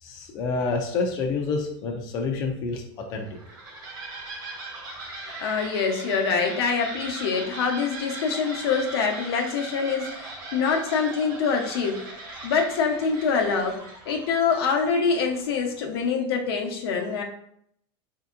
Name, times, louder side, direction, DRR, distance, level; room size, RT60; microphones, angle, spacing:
voice 1, 0.0-3.3, left 4 dB, 30° left, 1 dB, 0.4 m, -28 dB
sound 1, 3.2-15.7, right 2 dB, 30° right, 0.7 m, -39 dB
voice 2, 5.4-12.0 12.4-13.8 14.1-17.2, left 5 dB, 75° left, 2 dB, 0.8 m, -25 dB
4.4 x 2.7 x 2.4 m, 0.69 s
supercardioid pair, 170°, 13 cm